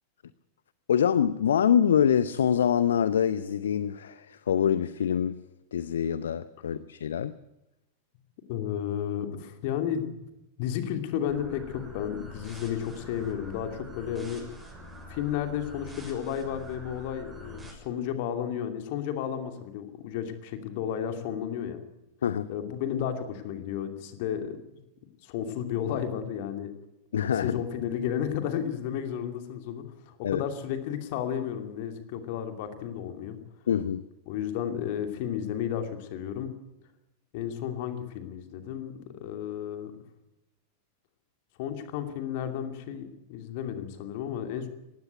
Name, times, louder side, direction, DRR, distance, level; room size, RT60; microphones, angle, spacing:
voice 1, 0.9-5.5 5.7-7.3 22.2-22.5 27.1-27.6 30.2-30.4 33.7-34.0, left 8 dB, 65° left, 0.6 m, -25 dB
voice 2, 8.5-10.0 10.6-14.5 15.1-21.8 22.5-24.6 25.2-26.7 27.4-33.4 34.3-36.5 37.3-38.9 39.2-39.9 41.6-44.7, left 9 dB, 50° left, 2.7 m, -32 dB
sound 1, 11.3-17.7, equal, 10° right, 6.6 m, -46 dB
18.5 x 16.0 x 9.3 m
figure-of-eight pair, 90°, 0 cm